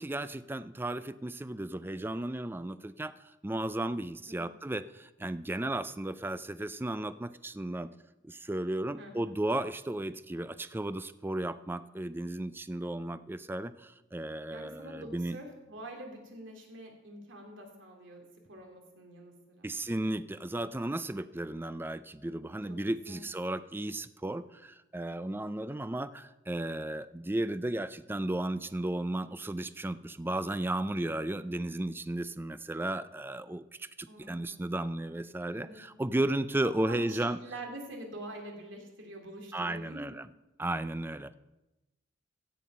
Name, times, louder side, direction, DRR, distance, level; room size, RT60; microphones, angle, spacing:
voice 1, 0.0-3.1 3.4-7.9 8.3-15.4 19.6-37.4 39.5-40.3 40.6-41.3, right 1 dB, 10° right, 14 dB, 0.4 m, -34 dB
voice 2, 9.0-9.4 14.5-19.7 22.7-22.8 23.0-23.2 34.1-34.6 35.5-35.8 36.9-40.2, right 1 dB, 75° right, 2 dB, 2.9 m, -46 dB
16.0 x 7.6 x 5.5 m, 1.0 s
head